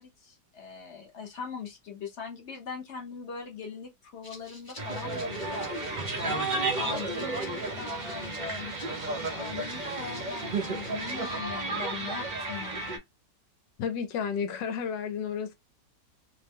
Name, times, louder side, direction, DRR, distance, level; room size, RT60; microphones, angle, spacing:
voice 1, 0.0-8.7 9.2-13.0, left 6 dB, 50° left, 0.8 m, -41 dB
Rattle (instrument), 4.2-11.4, left 1 dB, 30° left, 0.4 m, -51 dB
sound 1, 4.8-13.0, right 3 dB, 65° right, 0.4 m, -33 dB
voice 2, 13.8-15.5, left 7 dB, 80° left, 1.2 m, -32 dB
3.0 x 2.0 x 3.4 m
omnidirectional pair, 1.9 m